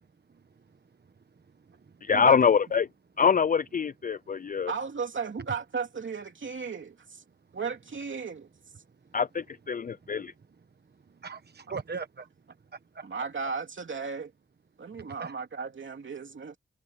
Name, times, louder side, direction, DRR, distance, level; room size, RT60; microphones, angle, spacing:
voice 1, 0.3-0.8 1.4-2.0 10.1-10.3 10.9-13.1 15.0-15.3, right 5 dB, 55° right, 1.1 m, -42 dB
voice 2, 2.0-2.9 3.2-4.7 9.1-10.3, left 6 dB, 45° left, 0.4 m, -24 dB
voice 3, 4.7-7.2 7.5-8.5 13.0-14.3 14.8-16.6, right 5 dB, 80° right, 2.7 m, -35 dB
wide cardioid pair, 70°, 20 cm